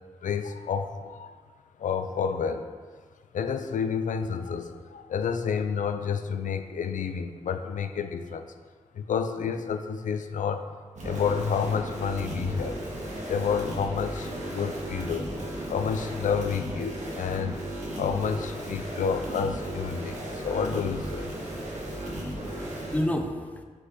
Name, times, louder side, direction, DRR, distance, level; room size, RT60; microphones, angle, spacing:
voice 1, 0.2-1.4 1.8-2.7 3.3-8.4 8.9-10.6 11.0-12.8 13.3-15.3 15.7-17.6 18.0-21.3, left 6 dB, 90° left, 8 dB, 0.5 m, -29 dB
sound 1, 11.0-23.0, right 1 dB, 70° right, 1.8 m, -35 dB
voice 2, 21.7-23.6, left 1 dB, 10° left, 4 dB, 0.7 m, -32 dB
6.1 x 5.5 x 3.9 m, 1.5 s
wide cardioid pair, 80°, 13 cm